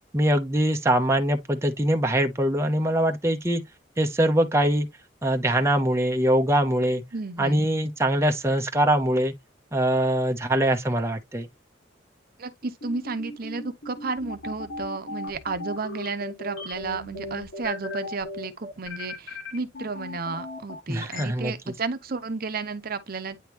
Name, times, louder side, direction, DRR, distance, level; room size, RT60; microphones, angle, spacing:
voice 1, 0.1-3.6 4.0-4.9 5.2-7.0 7.4-9.3 9.7-11.5 20.9-21.5, right 1 dB, 15° right, 0.7 m, -23 dB
voice 2, 7.1-7.6 12.4-23.4, right 4 dB, 50° right, 0.8 m, -32 dB
sound 1, 12.8-21.2, left 2 dB, 85° left, 2.3 m, -37 dB
9.3 x 3.5 x 2.9 m
head